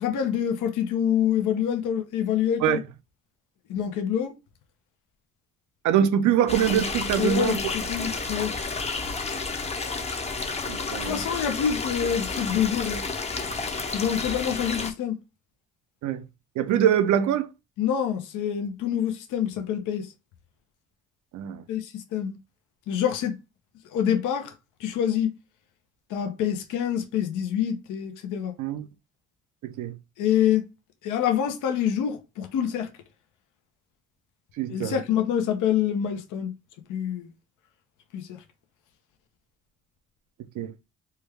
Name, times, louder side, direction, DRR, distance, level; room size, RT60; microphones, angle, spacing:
voice 1, 0.0-2.8 3.7-4.3 7.2-8.5 11.0-13.0 13.9-15.2 17.8-20.1 21.7-22.4 22.9-23.4 23.9-24.5 24.8-25.3 26.1-28.5 30.2-30.7 31.0-32.9 34.7-36.5 36.9-37.3 38.1-38.4, left 9 dB, 85° left, 0.7 m, -26 dB
voice 2, 5.8-7.6 10.7-11.2 16.0-16.2 16.6-17.5 21.3-21.6 28.6-28.9 29.6-30.0 34.6-35.0 40.6-40.7, right 9 dB, 75° right, 0.5 m, -24 dB
sound 1, 6.5-14.9, left 4 dB, 20° left, 0.6 m, -31 dB
3.3 x 2.3 x 3.3 m
cardioid pair, 90°, 30 cm